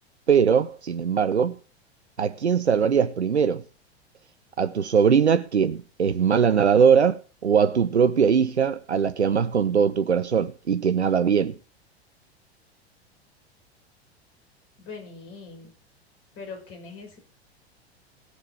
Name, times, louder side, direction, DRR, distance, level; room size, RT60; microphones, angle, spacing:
voice 1, 0.3-1.6 2.2-3.6 4.6-11.6, right 7 dB, 85° right, 0.6 m, -21 dB
voice 2, 14.8-15.7 16.4-17.2, left 4 dB, 40° left, 5.8 m, -41 dB
17.0 x 6.6 x 5.8 m
figure-of-eight pair, 85°, 32 cm